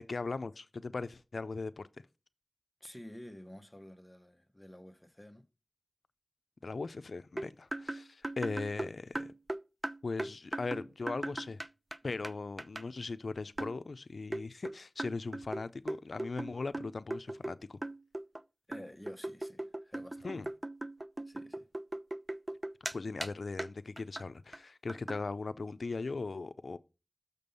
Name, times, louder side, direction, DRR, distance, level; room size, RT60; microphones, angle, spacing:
voice 1, 0.1-1.9 6.6-9.3 10.0-11.6 12.0-17.8 20.2-20.5 22.9-26.8, left 3 dB, 80° left, 0.4 m, -39 dB
voice 2, 2.8-5.4 18.7-20.4 21.3-21.7, left 1 dB, 15° left, 0.9 m, -51 dB
sound 1, 7.4-12.0 12.2-12.3 12.6-12.8 13.6-13.8 14.3-17.6 17.8-18.4 18.7-23.0 23.2-23.3 23.6-23.7 24.0-24.2 24.5-24.6 24.9-25.2, right 1 dB, 25° right, 0.3 m, -39 dB
6.8 x 5.3 x 5.5 m
wide cardioid pair, 60°, 0 cm